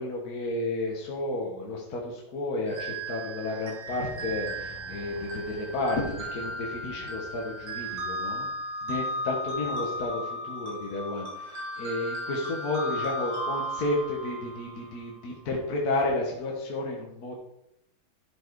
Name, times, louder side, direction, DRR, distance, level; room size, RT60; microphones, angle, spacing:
voice 1, 0.0-8.5 8.8-17.3, left 2 dB, 50° left, -1 dB, 1.8 m, -32 dB
sound 1, 2.7-15.0, right 1 dB, 65° right, 2.7 m, -35 dB
sound 2, 3.8-8.7, right 1 dB, 70° left, 3.2 m, -49 dB
12.0 x 4.6 x 4.7 m, 0.80 s
omnidirectional pair, 2.2 m